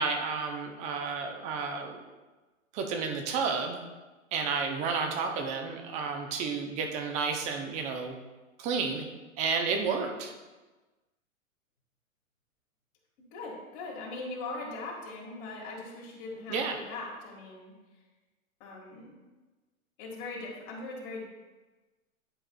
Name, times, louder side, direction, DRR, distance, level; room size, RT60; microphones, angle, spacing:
voice 1, 0.0-2.0 2.7-3.8 4.3-8.1 8.6-9.0 9.4-10.3 16.5-16.8, right 5 dB, 15° right, 4 dB, 0.5 m, -31 dB
voice 2, 13.3-18.0 18.6-19.1 20.0-21.2, left 3 dB, 40° left, -3 dB, 1.7 m, -40 dB
10.5 x 4.7 x 2.2 m, 1.2 s
hypercardioid pair, 125°, 42 cm